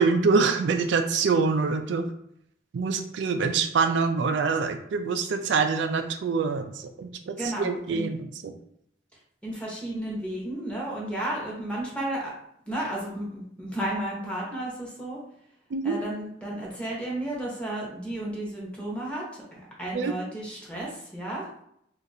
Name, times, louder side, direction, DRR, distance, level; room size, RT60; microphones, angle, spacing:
voice 1, 0.0-2.0 2.7-8.6 15.7-16.0 19.9-20.1, right 5 dB, 75° right, 7 dB, 0.3 m, -25 dB
voice 2, 7.4-8.1 9.4-12.3 12.7-15.2 15.8-21.5, right 1 dB, 5° left, -4 dB, 0.9 m, -33 dB
2.7 x 2.4 x 4.0 m, 0.72 s
head